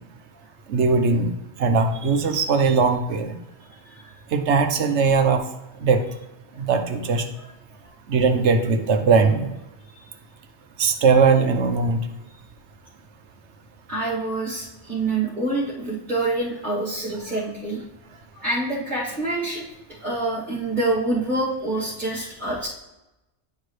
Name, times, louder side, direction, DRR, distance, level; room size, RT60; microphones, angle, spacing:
voice 1, 0.7-1.3 1.6-3.3 4.3-5.4 5.8-6.0 6.7-7.2 8.1-9.5 10.8-12.0, right 4 dB, 80° right, 6 dB, 1.1 m, -19 dB
voice 2, 13.9-17.8 18.3-19.6 20.0-22.7, right 2 dB, 40° right, -9 dB, 2.4 m, -26 dB
10.0 x 4.7 x 3.2 m, 0.94 s
omnidirectional pair, 1.2 m